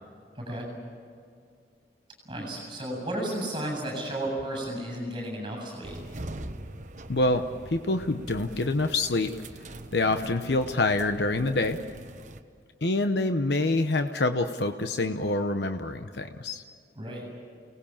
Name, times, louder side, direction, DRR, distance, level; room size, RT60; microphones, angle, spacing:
voice 1, 0.3-0.7 2.2-6.0 17.0-17.2, right 1 dB, 25° right, 1 dB, 7.6 m, -33 dB
sound 1, 5.8-12.4, right 1 dB, 45° right, 1.2 m, -42 dB
voice 2, 7.1-9.3 9.9-11.8 12.8-16.6, left 2 dB, 75° left, 7 dB, 0.9 m, -26 dB
29.5 x 19.0 x 7.3 m, 2.2 s
head